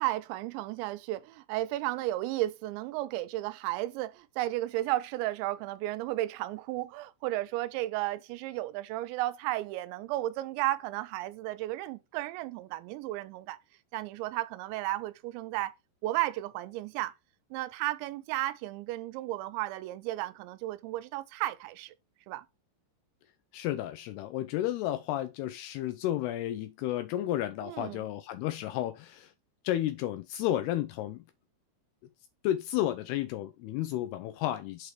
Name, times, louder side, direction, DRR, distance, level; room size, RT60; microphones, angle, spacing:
voice 1, 0.0-13.6 13.9-15.7 16.0-17.1 17.5-21.9 22.3-22.4 27.6-28.1, right 16 dB, 85° right, 2.9 m, -33 dB
voice 2, 23.5-29.3 29.6-31.3 32.4-34.9, left 13 dB, 85° left, 2.3 m, -32 dB
6.6 x 4.8 x 4.5 m
omnidirectional pair, 5.1 m